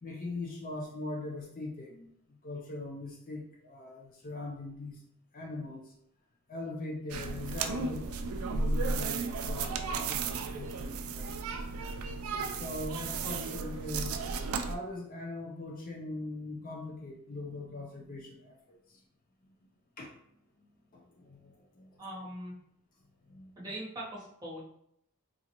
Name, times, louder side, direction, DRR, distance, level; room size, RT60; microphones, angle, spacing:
voice 1, 0.0-5.0 5.3-5.9 6.5-8.2 8.5-11.5 12.5-14.2 14.6-19.0 20.0-20.1 20.6-22.2 23.2-23.6, left 2 dB, 40° left, -2 dB, 0.5 m, -41 dB
sound 1, 7.1-14.8, right 4 dB, 70° right, 0.3 m, -34 dB
voice 2, 22.0-22.5 23.6-24.6, right 1 dB, 15° right, -7 dB, 1.1 m, -41 dB
3.8 x 2.4 x 2.9 m, 0.74 s
head